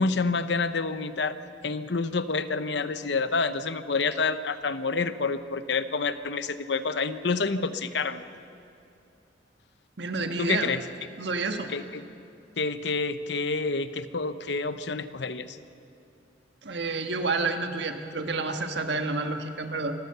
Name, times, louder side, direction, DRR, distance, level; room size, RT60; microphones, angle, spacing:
voice 1, 0.0-1.4 1.6-8.2 10.4-10.8 11.7-12.0 12.6-15.6, left 4 dB, 70° left, 12 dB, 0.9 m, -28 dB
voice 2, 10.0-10.7 11.2-11.7 16.6-19.9, right 3 dB, 70° right, 6 dB, 1.6 m, -29 dB
26.5 x 15.0 x 6.8 m, 2.7 s
head